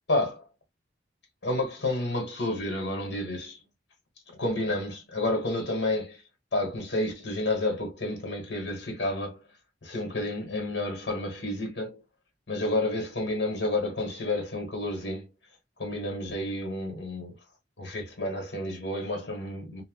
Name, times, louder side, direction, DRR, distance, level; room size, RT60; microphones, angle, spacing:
voice 1, 0.1-0.4 1.4-3.6 4.4-6.2 6.5-9.4 9.8-12.0 12.5-15.3 15.8-17.3 17.8-19.8, left 2 dB, 75° left, 1.3 m, -30 dB
2.9 x 2.1 x 2.9 m
head